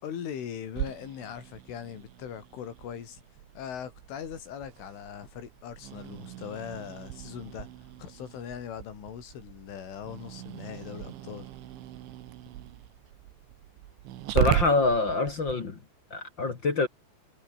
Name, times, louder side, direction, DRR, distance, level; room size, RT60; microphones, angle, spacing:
voice 1, 0.0-3.2 3.6-7.7 8.0-11.5, left 8 dB, 75° left, 6.1 m, -40 dB
Growling, 0.8-15.5, right 13 dB, 75° right, 3.8 m, -37 dB
voice 2, 14.3-15.8 16.1-16.9, left 3 dB, 45° left, 1.6 m, -25 dB
omnidirectional pair, 5.6 m